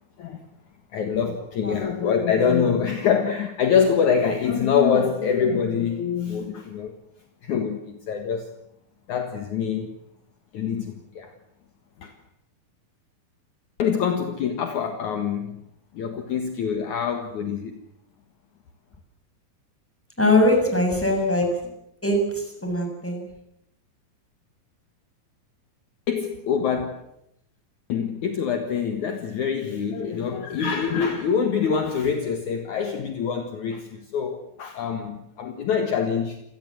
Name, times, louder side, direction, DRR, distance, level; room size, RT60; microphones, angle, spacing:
voice 1, 0.9-6.9 7.4-8.5 9.1-9.9 10.5-11.3 12.0-12.1 13.8-15.6 15.9-17.8 26.1-27.0 27.9-36.4, left 7 dB, 60° left, 6 dB, 2.8 m, -25 dB
voice 2, 20.2-21.5 22.0-23.2, left 1 dB, 5° left, 2 dB, 6.9 m, -21 dB
27.5 x 19.0 x 7.8 m, 0.77 s
omnidirectional pair, 4.3 m